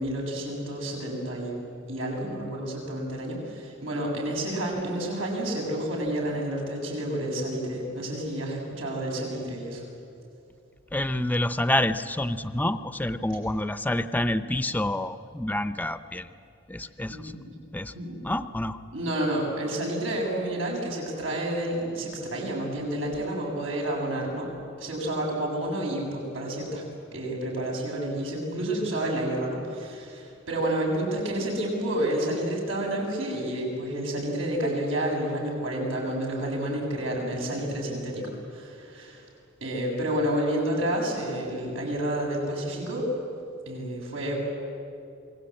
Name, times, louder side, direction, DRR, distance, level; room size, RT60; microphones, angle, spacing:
voice 1, 0.0-1.5 1.9-9.8 17.1-17.3 17.9-18.2 18.9-24.5 24.8-26.8 27.1-39.2 39.6-43.1 43.7-44.3, right 1 dB, 85° right, -1 dB, 7.6 m, -30 dB
voice 2, 10.9-16.3 16.7-17.2 17.7-17.9 18.2-18.8, left 1 dB, 10° left, 12 dB, 0.7 m, -27 dB
28.0 x 21.0 x 8.6 m, 2.6 s
head